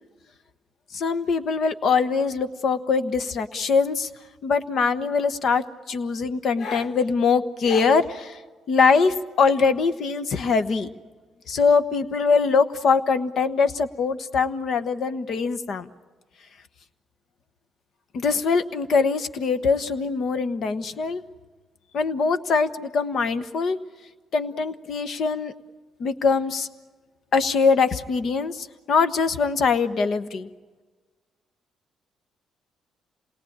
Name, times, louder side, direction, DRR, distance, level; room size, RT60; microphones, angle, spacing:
voice 1, 0.9-4.1 4.4-8.4 8.7-10.9 11.5-15.9 18.1-21.2 21.9-23.8 24.3-25.5 26.0-26.7 27.3-30.5, left 5 dB, 65° left, 11 dB, 1.1 m, -22 dB
27.5 x 19.0 x 8.8 m, 1.4 s
cardioid pair, 90°, 0 cm